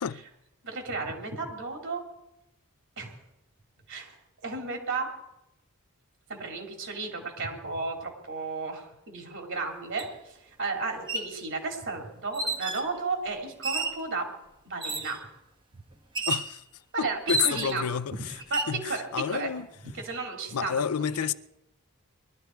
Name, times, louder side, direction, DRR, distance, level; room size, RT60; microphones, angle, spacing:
voice 1, 0.6-2.0 3.0-3.2 3.9-4.2 4.4-5.1 6.3-14.3 14.6-15.2 16.9-17.9 18.3-19.5 20.0-21.3, right 3 dB, 60° right, 3.1 m, -34 dB
sound 1, 10.0-10.1 10.9-11.3 12.3-12.9 13.6-14.0 14.8-15.2 16.2-16.5 17.3-17.9 18.4-18.8, right 2 dB, 20° right, 1.3 m, -31 dB
voice 2, 16.3-16.6 17.0-18.3 18.7-19.7 20.5-21.3, left 7 dB, 85° left, 0.5 m, -30 dB
21.0 x 12.5 x 4.6 m
head